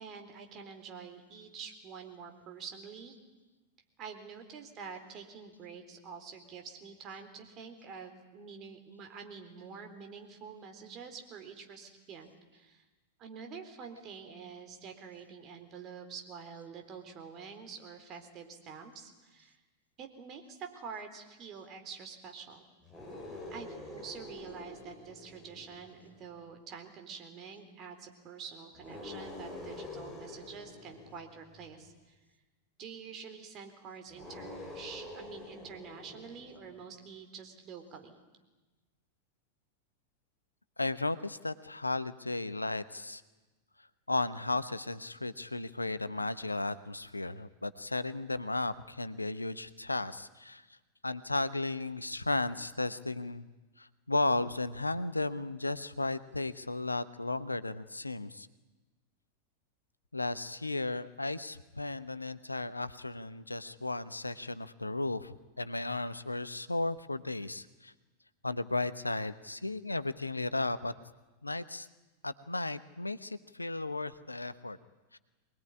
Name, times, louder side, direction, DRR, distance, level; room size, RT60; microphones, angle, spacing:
voice 1, 0.0-3.1 4.0-12.8 13.2-19.6 20.0-22.7 23.5-32.2 32.8-38.2, right 6 dB, 35° right, 5 dB, 3.9 m, -47 dB
sound 1, 22.8-26.4 28.7-31.9 34.1-36.8, left 2 dB, ahead, 8.0 m, -46 dB
voice 2, 40.8-43.2 44.1-50.6 51.0-53.5 53.8-58.5 60.1-67.9 68.4-70.9 71.4-71.9 72.2-74.8 75.1-75.2, left 2 dB, 85° left, 14 dB, 1.0 m, -34 dB
24.0 x 20.5 x 9.9 m, 1.2 s
figure-of-eight pair, 90°, 0 cm